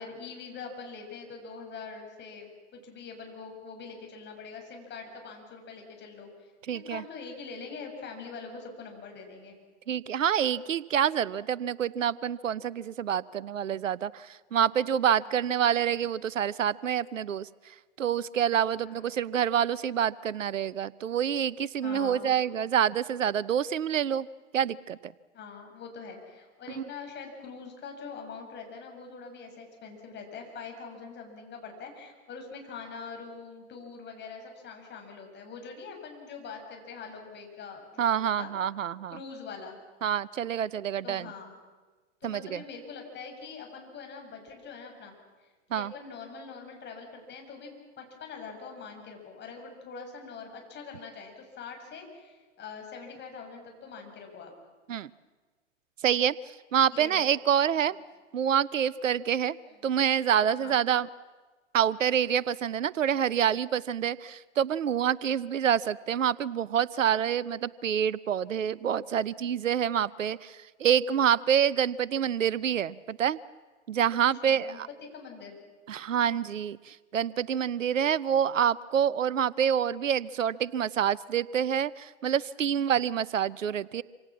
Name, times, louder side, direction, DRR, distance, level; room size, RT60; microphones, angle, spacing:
voice 1, 0.0-9.6 18.8-19.2 21.8-22.3 25.3-38.5 39.1-39.8 41.0-41.6 42.2-45.2 45.4-47.7 48.0-54.5 56.9-57.3 60.4-60.8 74.4-75.6, left 5 dB, 30° left, 3 dB, 7.1 m, -43 dB
voice 2, 6.7-7.0 9.9-24.3 24.5-25.1 26.8-26.9 38.0-39.2 40.0-41.3 42.2-42.6 45.7-45.9 54.9-55.1 56.0-56.3 56.7-58.0 58.3-59.6 59.8-61.1 61.7-73.4 73.9-74.9 75.9-84.0, right 9 dB, 80° right, 20 dB, 0.8 m, -27 dB
27.0 x 26.5 x 7.4 m, 1.3 s
hypercardioid pair, 105°, 37 cm